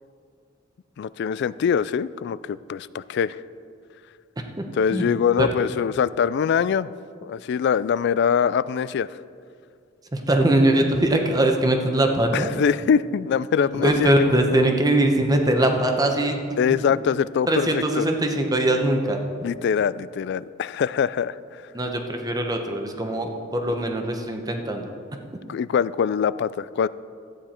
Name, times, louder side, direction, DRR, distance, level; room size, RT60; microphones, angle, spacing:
voice 1, 1.0-3.4 4.7-6.9 7.2-9.1 12.3-14.8 16.6-18.1 19.4-21.4 25.5-26.9, left 7 dB, 60° left, 17 dB, 0.3 m, -23 dB
voice 2, 10.1-12.5 13.7-16.4 16.7-16.8 17.5-19.2 21.7-24.9, right 1 dB, 20° right, 3 dB, 1.0 m, -21 dB
14.0 x 9.2 x 4.4 m, 2.2 s
head